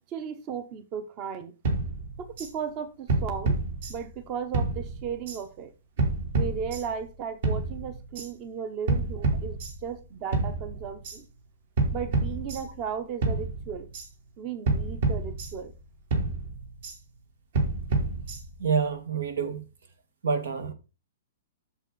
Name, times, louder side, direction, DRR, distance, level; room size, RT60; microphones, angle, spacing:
voice 1, 0.1-1.5 2.2-3.6 3.9-5.7 6.3-11.2 11.9-13.9 14.4-15.7, right 7 dB, 30° right, 0.9 m, -35 dB
sound 1, 1.6-2.5 3.1-4.2 4.5-5.4 6.0-7.1 7.4-8.3 8.9-10.0 10.3-11.2 11.8-12.9 13.2-14.1 14.7-15.8 16.1-17.0 17.5-18.7, right 3 dB, 60° right, 3.0 m, -29 dB
voice 2, 18.6-19.7 20.2-20.7, right 5 dB, 85° right, 1.9 m, -27 dB
7.9 x 6.7 x 4.0 m
hypercardioid pair, 155°, 0 cm